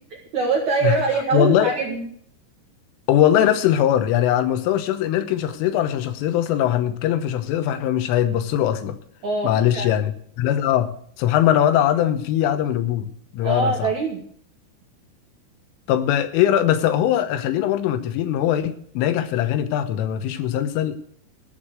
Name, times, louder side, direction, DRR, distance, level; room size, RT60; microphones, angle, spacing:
voice 1, 0.3-2.0 9.2-9.9 13.4-14.2, right 4 dB, 70° right, 1.8 m, -23 dB
voice 2, 1.3-1.7 3.1-9.0 9.4-10.1 10.4-10.9 11.2-13.1 13.3-13.9 15.9-21.0, left 11 dB, 85° left, 3.5 m, -21 dB
14.5 x 6.6 x 7.6 m
omnidirectional pair, 5.6 m